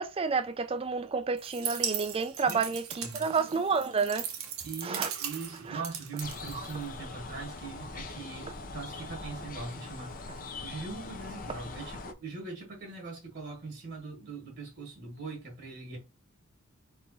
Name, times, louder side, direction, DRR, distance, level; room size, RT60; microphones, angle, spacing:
voice 1, 0.0-4.3 4.8-5.1 5.7-5.8 6.5-6.7, right 5 dB, 25° right, 0.4 m, -30 dB
sound 1, 1.4-7.1, right 8 dB, 85° right, 0.8 m, -38 dB
voice 2, 4.6-16.0, right 4 dB, 50° right, 1.3 m, -41 dB
sound 2, 6.2-12.1, left 3 dB, 40° left, 0.6 m, -42 dB
3.4 x 3.0 x 3.9 m
head